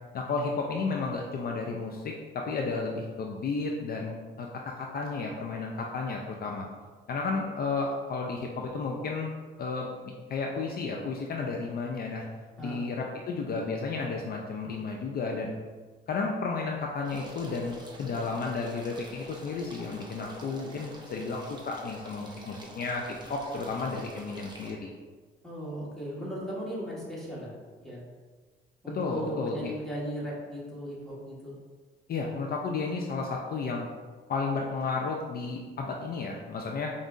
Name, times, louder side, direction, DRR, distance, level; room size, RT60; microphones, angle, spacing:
voice 1, 0.1-4.5 4.8-6.7 7.1-9.3 9.6-9.9 10.3-12.3 12.6-15.5 16.1-24.9 28.9-29.7 32.1-33.9 34.3-36.9, left 4 dB, 50° left, 0 dB, 0.4 m, -32 dB
voice 2, 12.6-12.9 25.4-28.0 28.8-31.5, equal, ahead, -7 dB, 1.4 m, -37 dB
sound 1, 17.0-24.7, right 1 dB, 20° right, 0.7 m, -47 dB
5.4 x 2.5 x 2.5 m, 1.4 s
cardioid pair, 90°, 20 cm